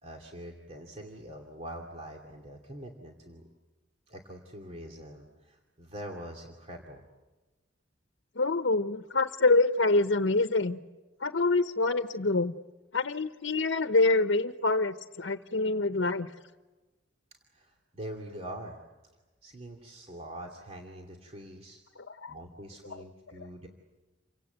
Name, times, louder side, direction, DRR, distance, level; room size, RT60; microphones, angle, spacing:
voice 1, 0.0-3.4 4.1-7.0 17.5-18.8 19.4-21.8 22.3-23.7, right 1 dB, 35° right, 1 dB, 2.5 m, -44 dB
voice 2, 8.4-10.8 11.2-12.5 12.9-16.3 22.1-22.3 22.9-23.0, left 3 dB, 90° left, 9 dB, 0.9 m, -26 dB
29.5 x 25.0 x 8.0 m, 1.2 s
head